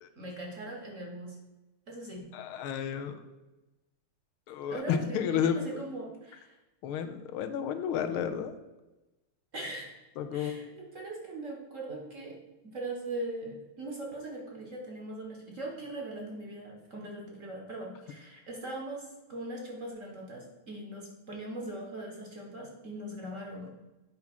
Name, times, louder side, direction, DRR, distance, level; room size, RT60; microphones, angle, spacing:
voice 1, 0.2-1.4 1.9-2.3 4.7-6.6 9.5-9.9 10.3-12.4 12.6-23.7, right 1 dB, 45° right, 0 dB, 1.2 m, -40 dB
voice 2, 2.3-3.2 4.5-5.8 6.8-8.6 10.2-10.7, left 8 dB, 85° left, 8 dB, 1.5 m, -32 dB
8.6 x 3.5 x 6.0 m, 1.1 s
omnidirectional pair, 2.4 m